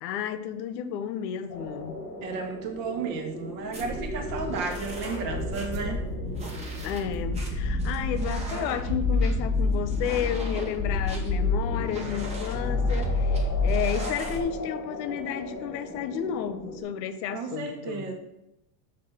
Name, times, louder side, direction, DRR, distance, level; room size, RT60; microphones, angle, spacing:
voice 1, 0.0-2.0 6.8-13.4 13.6-18.1, left 8 dB, 90° left, 0.9 m, -32 dB
sound 1, 1.5-16.8, left 2 dB, 45° left, 2.4 m, -40 dB
voice 2, 2.2-6.0 17.3-18.1, right 4 dB, 70° right, 1.7 m, -33 dB
sound 2, 3.7-14.4, left 2 dB, 15° right, 0.7 m, -29 dB
sound 3, 5.0-10.3, equal, 40° right, 1.2 m, -39 dB
6.2 x 4.2 x 6.4 m
cardioid pair, 180°, 49 cm